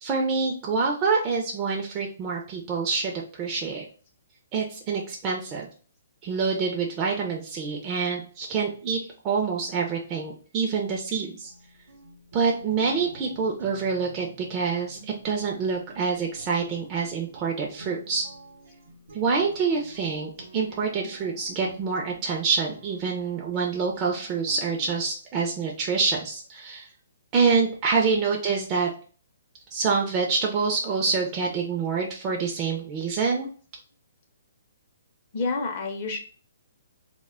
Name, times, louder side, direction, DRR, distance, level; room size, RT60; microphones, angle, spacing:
voice 1, 0.0-3.9 4.5-5.7 6.2-9.0 9.2-11.5 12.3-18.2 19.1-26.9 27.3-28.9 29.7-33.5, right 5 dB, 25° right, -1 dB, 0.4 m, -26 dB
sound 1, 11.4-24.9, right 2 dB, 85° right, 0.7 m, -49 dB
voice 2, 35.3-36.2, left 3 dB, 40° left, 2 dB, 0.5 m, -30 dB
2.1 x 2.1 x 3.4 m, 0.40 s
hypercardioid pair, 145°, 0 cm